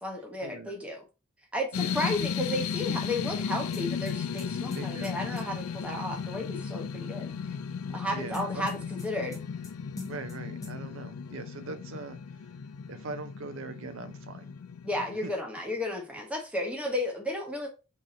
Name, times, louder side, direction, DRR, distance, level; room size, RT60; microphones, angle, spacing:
voice 1, 0.0-1.0 1.5-7.3 7.9-9.4 14.8-17.7, left 1 dB, 5° right, 0.9 m, -33 dB
sound 1, 1.7-15.1, left 6 dB, 85° left, 0.4 m, -35 dB
sound 2, 3.7-5.4 8.3-9.7 10.0-10.4 10.6-10.7, left 3 dB, 15° left, 0.6 m, -44 dB
voice 2, 4.7-5.2 8.1-8.9 10.1-12.4 12.9-14.5 15.2-15.3, right 4 dB, 65° right, 0.4 m, -41 dB
3.8 x 2.7 x 4.1 m
head